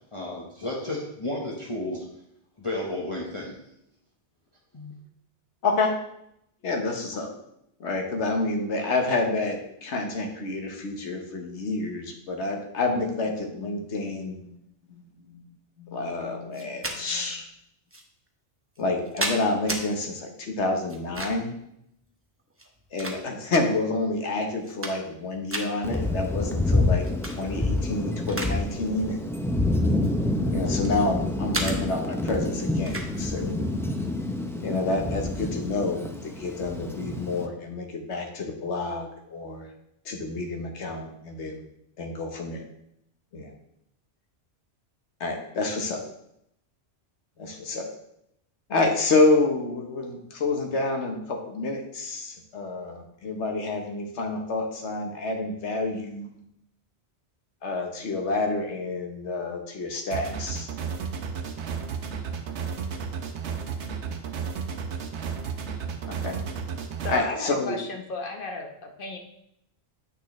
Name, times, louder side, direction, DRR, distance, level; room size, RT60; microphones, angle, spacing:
voice 1, 0.1-2.0 2.6-3.6 4.7-4.9, left 1 dB, 30° left, -4 dB, 1.1 m, -32 dB
voice 2, 5.6-6.0 6.6-7.3 7.8-14.6 14.9-15.4 15.8-17.5 18.8-21.5 22.9-27.1 27.4-29.3 30.5-33.6 34.6-39.7 40.0-41.6 42.0-42.6 43.3-43.5 45.2-46.0 47.4-47.9 48.7-56.4 57.6-60.7 66.1-66.4 67.1-67.8, left 3 dB, 80° left, 3 dB, 1.4 m, -28 dB
sound 1, 16.5-17.0 17.9-18.0 18.8-19.8 20.9-21.5 22.5-23.6 24.1-24.2 24.5-25.2 25.5-25.7 27.0-27.4 27.8-28.6 28.9-29.1 29.9-31.0 31.5-31.8 32.9-33.1, right 1 dB, 15° right, 0.7 m, -33 dB
Thunder, 25.8-37.5, left 2 dB, 5° left, 0.3 m, -28 dB
sound 2, 60.1-67.2, right 6 dB, 80° right, 1.1 m, -33 dB
voice 3, 67.0-69.2, left 2 dB, 50° left, 3 dB, 1.2 m, -34 dB
8.6 x 6.4 x 3.1 m, 0.78 s
omnidirectional pair, 1.2 m